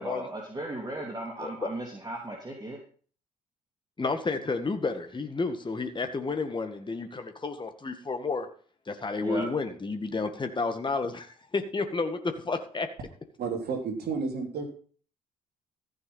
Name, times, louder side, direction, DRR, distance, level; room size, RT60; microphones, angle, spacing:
voice 1, 0.0-2.8 9.2-9.5, right 1 dB, 20° right, 0 dB, 3.1 m, -36 dB
voice 2, 1.4-1.7 4.0-8.5 8.9-12.9, left 3 dB, 25° left, 6 dB, 2.0 m, -31 dB
voice 3, 13.4-14.6, right 5 dB, 55° right, 4 dB, 3.1 m, -31 dB
15.0 x 6.8 x 5.6 m, 0.43 s
figure-of-eight pair, 50°, 20 cm